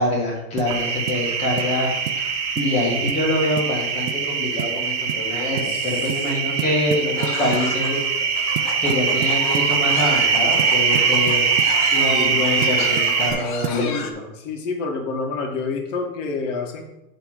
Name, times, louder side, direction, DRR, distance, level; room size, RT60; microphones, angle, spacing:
voice 1, 0.0-2.3 2.5-8.0 8.8-11.5 11.9-13.9 14.1-14.3, left 1 dB, 15° left, -2 dB, 1.6 m, -25 dB
sound 1, 0.6-0.8 1.1-1.3 1.6-1.8 2.1-2.2 2.6-2.8 3.1-3.3 3.6-3.7 4.1-4.3 4.6-4.8 5.1-5.3 5.6-5.7 6.1-6.3 6.6-7.7 8.6-9.8 10.6-11.8 12.6-13.9, right 12 dB, 70° right, 0.6 m, -31 dB
sound 2, 0.7-13.3, right 6 dB, 50° right, 2.6 m, -22 dB
voice 2, 5.6-6.1 7.2-7.3 12.1-12.4 13.8-14.1 14.4-16.8, left 4 dB, 50° left, 2 dB, 1.6 m, -28 dB
sound 3, 7.2-14.1, left 5 dB, 30° left, 0.8 m, -33 dB
9.1 x 3.5 x 6.6 m, 0.93 s
supercardioid pair, 175°, 46 cm